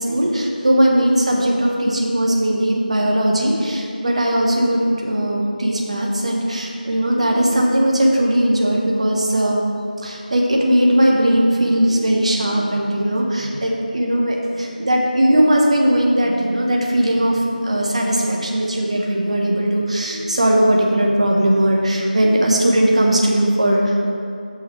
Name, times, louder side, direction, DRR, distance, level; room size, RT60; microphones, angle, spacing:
voice 1, 0.0-9.6 10.0-24.1, right 1 dB, 45° right, -1 dB, 1.2 m, -18 dB
14.0 x 5.9 x 3.3 m, 2.5 s
figure-of-eight pair, 165°, 5 cm